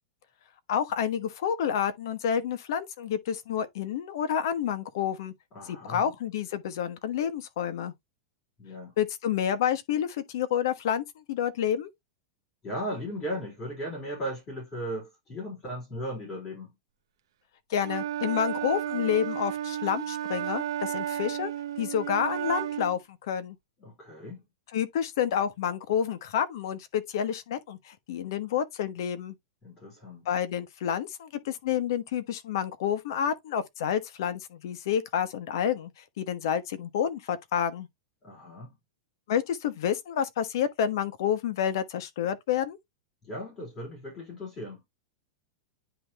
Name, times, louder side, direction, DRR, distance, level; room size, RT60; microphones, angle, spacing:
voice 1, 0.7-5.3 5.7-7.9 9.0-11.9 17.7-21.5 21.8-23.6 24.7-29.3 30.2-35.9 36.2-37.9 39.3-42.8, left 9 dB, 60° left, 1.1 m, -29 dB
voice 2, 5.5-6.1 8.6-8.9 12.6-16.7 23.8-24.4 29.6-30.3 38.2-38.7 43.2-44.8, equal, 20° left, 4.4 m, -37 dB
Wind instrument woodwind instrument, 17.8-23.0, right 11 dB, 90° right, 0.7 m, -33 dB
10.0 x 3.4 x 2.9 m
supercardioid pair, 170°, 2 cm